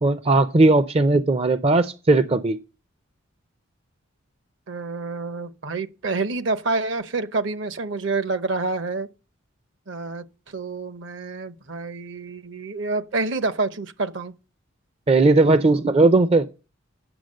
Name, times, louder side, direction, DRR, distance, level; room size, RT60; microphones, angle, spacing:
voice 1, 0.0-2.6 15.1-16.5, right 2 dB, 30° right, 0.4 m, -17 dB
voice 2, 4.7-9.1 9.9-14.3, right 3 dB, 60° right, 0.8 m, -28 dB
9.1 x 6.8 x 6.5 m
head